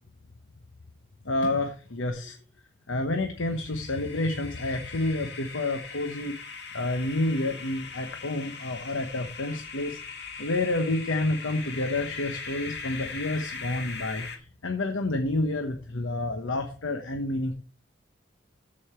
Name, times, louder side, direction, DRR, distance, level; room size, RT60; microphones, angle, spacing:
voice 1, 1.2-2.4 2.9-6.4 6.7-10.0 10.4-17.6, left 2 dB, 85° left, 5 dB, 1.0 m, -29 dB
sound 1, 3.4-14.4, left 5 dB, 55° left, 1.8 m, -40 dB
13.5 x 5.5 x 4.4 m, 0.38 s
head